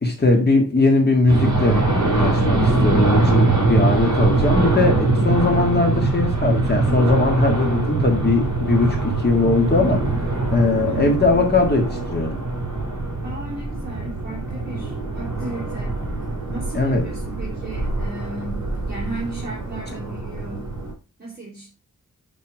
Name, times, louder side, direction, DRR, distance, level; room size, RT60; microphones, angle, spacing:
voice 1, 0.0-10.2 10.5-12.4 16.7-17.0, left 3 dB, 30° left, 2 dB, 1.8 m, -20 dB
sound 1, 1.3-20.9, right 3 dB, 55° right, 4.9 m, -23 dB
voice 2, 13.2-15.9 16.5-20.7 21.2-21.7, right 2 dB, 30° right, -4 dB, 3.3 m, -35 dB
9.2 x 5.4 x 4.9 m, 0.33 s
wide cardioid pair, 140°, 33 cm